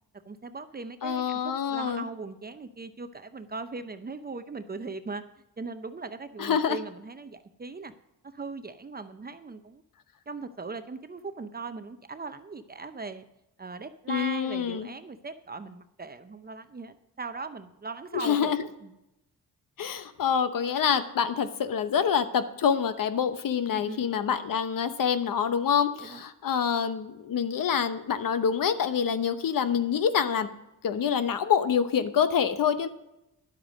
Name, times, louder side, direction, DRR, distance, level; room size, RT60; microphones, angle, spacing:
voice 1, 0.3-5.2 5.6-7.9 8.2-9.8 10.3-13.3 13.6-18.5 18.8-18.9 23.7-24.0 26.0-26.2, right 4 dB, 25° right, 10 dB, 0.6 m, -39 dB
voice 2, 1.0-2.0 6.4-6.8 14.1-14.9 18.1-18.6 19.8-30.5 30.8-32.9, left 7 dB, 60° left, 11 dB, 0.9 m, -26 dB
10.5 x 7.9 x 5.1 m, 0.89 s
cardioid pair, 95°, 38 cm